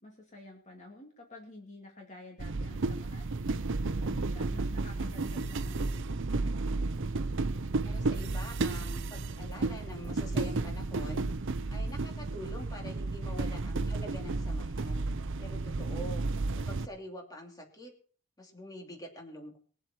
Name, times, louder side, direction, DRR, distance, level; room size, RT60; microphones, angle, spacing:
voice 1, 0.0-3.3 3.9-6.2, left 2 dB, 35° left, 0 dB, 2.4 m, -50 dB
sound 1, 2.4-16.9, right 3 dB, 60° right, 0.7 m, -32 dB
voice 2, 7.8-11.3 11.7-15.1 15.4-16.3 16.6-17.9 18.4-19.6, equal, 15° left, 0 dB, 2.9 m, -45 dB
21.5 x 7.9 x 4.4 m, 0.42 s
head